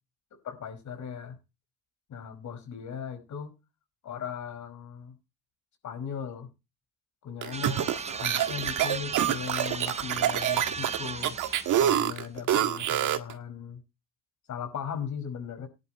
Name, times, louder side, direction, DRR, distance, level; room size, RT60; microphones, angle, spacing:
voice 1, 0.3-1.4 2.1-3.5 4.0-5.1 5.8-6.5 7.2-11.4 11.8-13.8 14.5-15.7, left 7 dB, 70° left, 5.1 m, -38 dB
sound 1, 7.4-13.3, right 11 dB, 80° right, 1.7 m, -26 dB
sound 2, 7.5-12.2, right 4 dB, 20° right, 0.8 m, -37 dB
18.5 x 11.0 x 3.0 m
cardioid pair, 90°, 30 cm